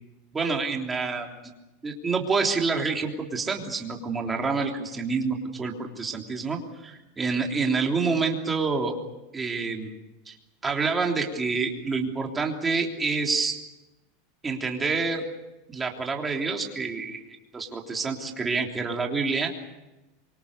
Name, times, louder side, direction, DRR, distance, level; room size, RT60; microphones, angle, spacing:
voice 1, 0.3-1.3 1.8-8.9 9.3-9.9 10.3-10.4 10.6-13.6 14.4-15.2 15.7-19.5, right 4 dB, 10° right, 1 dB, 3.3 m, -27 dB
27.0 x 25.0 x 6.9 m, 1.0 s
supercardioid pair, 165°, 0 cm